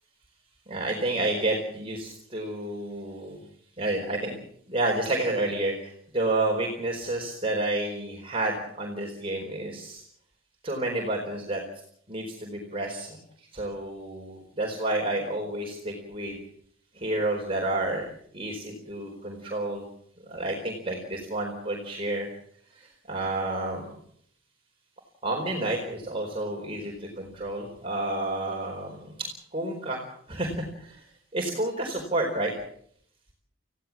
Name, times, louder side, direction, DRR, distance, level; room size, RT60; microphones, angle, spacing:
voice 1, 0.7-3.4 3.8-4.4 4.7-10.0 10.6-11.6 12.1-13.2 13.5-16.4 16.9-18.1 18.3-19.9 20.3-22.3 22.7-23.8 25.2-30.0 30.3-31.0 31.3-32.5, right 2 dB, 25° right, -1 dB, 4.5 m, -30 dB
29.0 x 16.5 x 7.4 m, 0.66 s
head